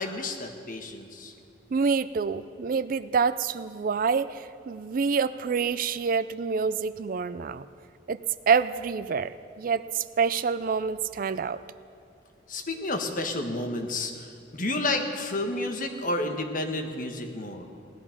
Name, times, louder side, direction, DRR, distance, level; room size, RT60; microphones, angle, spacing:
voice 1, 0.0-1.3 12.5-17.7, left 2 dB, 45° left, 4 dB, 1.4 m, -31 dB
voice 2, 1.7-7.6 8.1-11.6, right 5 dB, 50° right, 14 dB, 0.4 m, -27 dB
18.0 x 11.5 x 5.9 m, 2.4 s
head